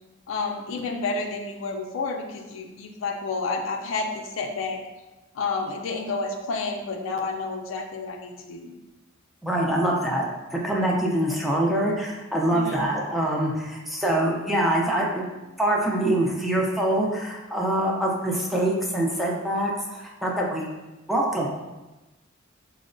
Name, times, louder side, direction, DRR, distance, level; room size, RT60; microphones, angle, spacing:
voice 1, 0.3-4.8 5.3-8.7 12.5-12.9, left 3 dB, 70° left, 2 dB, 0.4 m, -30 dB
voice 2, 9.4-10.2 10.5-15.2 15.6-20.7 21.1-21.5, right 1 dB, ahead, -3 dB, 0.4 m, -24 dB
4.4 x 2.0 x 2.5 m, 1.1 s
head